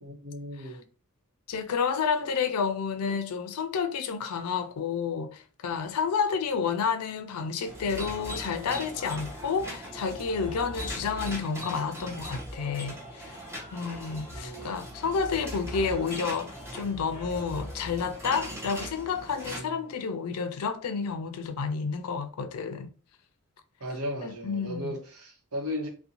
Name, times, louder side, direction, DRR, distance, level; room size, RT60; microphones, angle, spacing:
voice 1, 0.0-0.8 14.3-14.8 19.5-19.6 23.8-25.9, equal, 75° right, 0.8 m, -36 dB
voice 2, 1.5-13.4 13.7-22.9 24.2-25.0, left 5 dB, 85° left, 0.4 m, -30 dB
sound 1, 7.6-19.6, equal, 10° right, 0.6 m, -39 dB
2.5 x 2.1 x 2.8 m
head